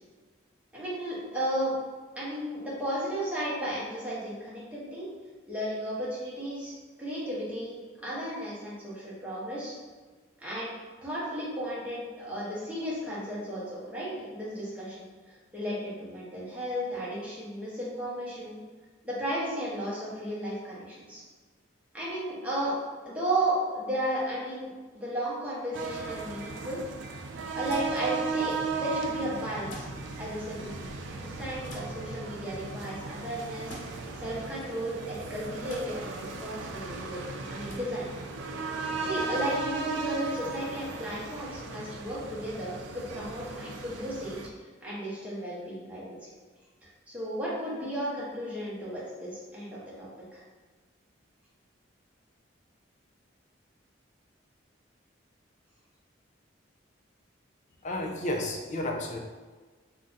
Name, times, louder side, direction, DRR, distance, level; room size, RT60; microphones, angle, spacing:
voice 1, 0.7-1.7 2.2-5.1 5.5-6.7 7.0-9.7 10.4-10.8 11.0-18.6 19.0-21.2 21.9-22.7 23.1-26.8 27.5-38.1 39.0-44.4 44.8-46.3 47.1-50.4, right 1 dB, 5° right, -7 dB, 0.7 m, -34 dB
sound 1, 25.7-44.5, right 4 dB, 65° right, 0.3 m, -36 dB
sound 2, 27.7-27.9 29.7-29.9 31.7-31.9 33.7-33.8 35.7-35.8 37.7-37.8, left 1 dB, 70° left, 0.7 m, -42 dB
voice 2, 57.8-59.2, left 1 dB, 35° left, 1 dB, 0.3 m, -32 dB
2.6 x 2.2 x 3.8 m, 1.4 s
head